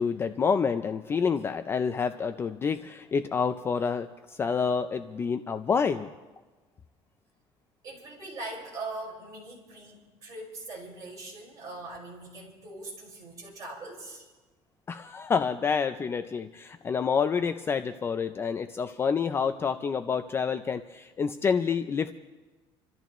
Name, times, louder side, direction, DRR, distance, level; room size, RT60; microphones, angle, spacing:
voice 1, 0.0-6.1 14.9-22.1, left 6 dB, 20° left, 9 dB, 0.4 m, -28 dB
voice 2, 7.8-14.3, right 2 dB, 30° right, -3 dB, 5.0 m, -41 dB
28.5 x 13.5 x 3.1 m, 1.2 s
cardioid pair, 170°, 11 cm